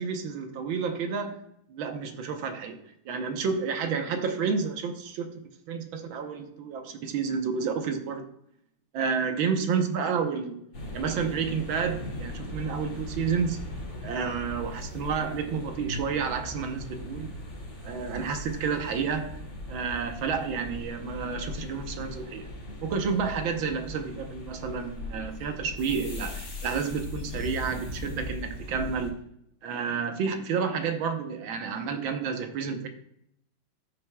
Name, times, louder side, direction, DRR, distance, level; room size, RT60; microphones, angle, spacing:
voice 1, 0.0-1.4 1.7-2.8 3.1-5.4 5.7-8.2 8.9-10.5 10.9-13.6 14.0-17.4 17.8-19.4 19.7-22.5 22.8-29.2 29.6-32.9, right 6 dB, 85° right, 6 dB, 1.8 m, -30 dB
sound 1, 10.7-29.1, left 1 dB, 65° left, 3.6 m, -39 dB
13.5 x 7.6 x 2.3 m, 0.74 s
omnidirectional pair, 2.1 m